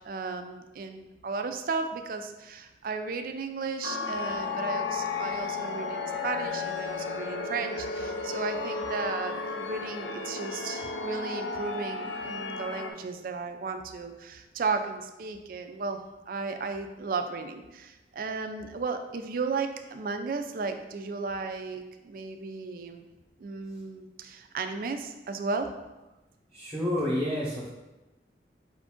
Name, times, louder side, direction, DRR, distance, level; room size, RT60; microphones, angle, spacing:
voice 1, 0.0-16.0 16.3-23.0 23.4-25.7, right 4 dB, 50° right, 7 dB, 0.3 m, -34 dB
sound 1, 3.8-12.9, left 4 dB, 85° left, 0.4 m, -33 dB
voice 2, 26.5-27.7, left 1 dB, 10° right, -9 dB, 0.8 m, -29 dB
5.0 x 2.5 x 3.6 m, 1.1 s
head